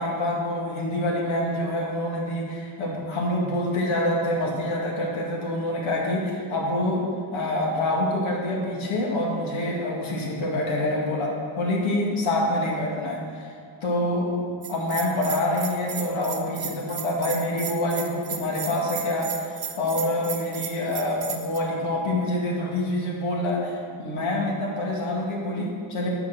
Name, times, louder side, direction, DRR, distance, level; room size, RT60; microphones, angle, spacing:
voice 1, 0.0-13.5 13.8-26.1, left 1 dB, 80° left, -2 dB, 2.1 m, -26 dB
Bell, 14.6-21.6, right 8 dB, 50° right, 0.8 m, -34 dB
8.6 x 5.9 x 6.2 m, 2.2 s
wide cardioid pair, 155°, 48 cm